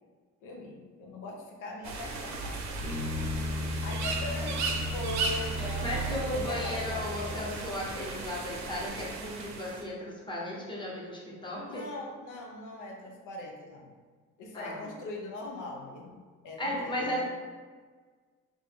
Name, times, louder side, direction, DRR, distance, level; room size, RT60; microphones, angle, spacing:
voice 1, 0.4-2.7 3.8-7.5 11.6-13.9 14.4-17.2, left 2 dB, 80° left, 0 dB, 0.6 m, -41 dB
sound 1, 1.8-9.8, right 3 dB, 65° right, 0.6 m, -36 dB
sound 2, 2.8-7.7, left 1 dB, 5° right, 0.7 m, -36 dB
voice 2, 5.8-11.8 14.5-14.8 16.6-17.2, left 1 dB, 15° left, -5 dB, 1.1 m, -35 dB
3.4 x 2.5 x 3.4 m, 1.5 s
cardioid pair, 90°, 30 cm